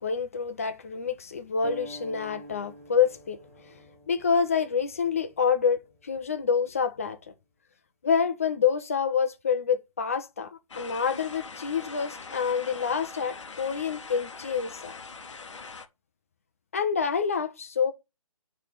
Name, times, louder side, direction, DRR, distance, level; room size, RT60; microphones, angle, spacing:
voice 1, 0.0-3.4 3.7-3.8 4.1-7.2 8.0-14.9 16.7-17.9, left 6 dB, 25° left, 0.4 m, -27 dB
sound 1, 1.6-6.8, equal, 10° right, 1.0 m, -48 dB
sound 2, 10.7-15.9, left 4 dB, 55° left, 0.7 m, -42 dB
8.1 x 3.2 x 3.9 m
figure-of-eight pair, 145°, 18 cm